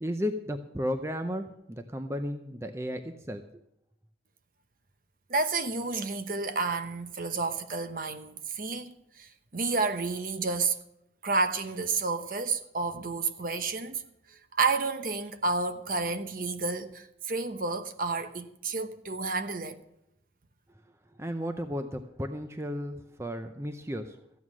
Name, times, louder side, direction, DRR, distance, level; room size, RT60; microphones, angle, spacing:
voice 1, 0.0-3.6 21.1-24.2, equal, 15° right, 0.6 m, -34 dB
voice 2, 5.3-10.8 11.2-14.0 14.6-19.8, right 4 dB, 50° right, 1.0 m, -30 dB
14.5 x 9.4 x 6.2 m
head